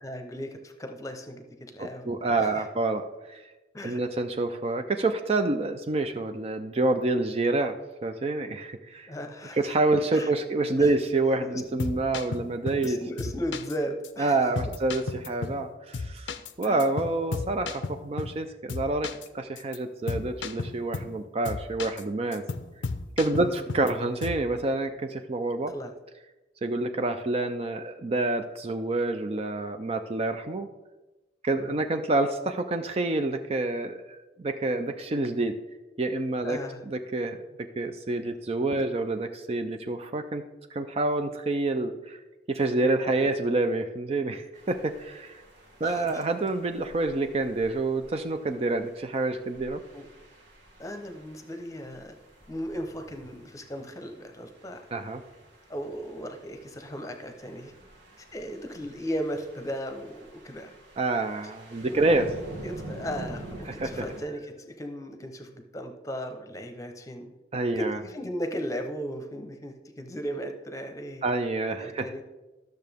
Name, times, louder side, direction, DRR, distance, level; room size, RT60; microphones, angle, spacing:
voice 1, 0.0-2.7 3.7-4.0 9.1-9.7 10.1-10.3 10.8-10.9 11.4-11.6 12.8-14.5 16.6-16.9 23.4-23.6 25.7-25.9 31.6-31.8 36.4-36.8 38.8-38.9 43.0-43.3 45.8-46.2 49.9-50.1 50.8-52.1 52.5-54.8 55.7-57.7 58.3-60.7 61.8-62.2 62.6-67.3 67.7-71.2 71.8-72.2, equal, 20° left, 6 dB, 0.8 m, -36 dB
voice 2, 1.8-3.4 3.8-7.7 8.0-9.1 9.6-13.0 14.2-16.3 16.6-19.1 19.3-22.4 23.2-25.7 26.6-30.7 31.4-35.5 36.0-36.6 36.9-37.5 37.8-40.4 40.7-42.2 42.5-45.4 45.8-49.8 54.9-55.2 61.0-62.3 63.8-64.1 67.5-68.0 71.2-72.1, right 2 dB, 35° right, 7 dB, 0.4 m, -27 dB
sound 1, 11.6-12.9 13.2-13.7 14.0-14.1 14.6-15.7 15.9-18.4 18.7-19.3 19.6-19.8 20.1-21.2 21.4-22.0 22.3-23.9 24.2-24.5, left 4 dB, 85° left, 0.6 m, -34 dB
sound 2, 44.5-64.2, right 1 dB, 70° right, 1.6 m, -47 dB
12.5 x 6.5 x 3.5 m, 1.1 s
head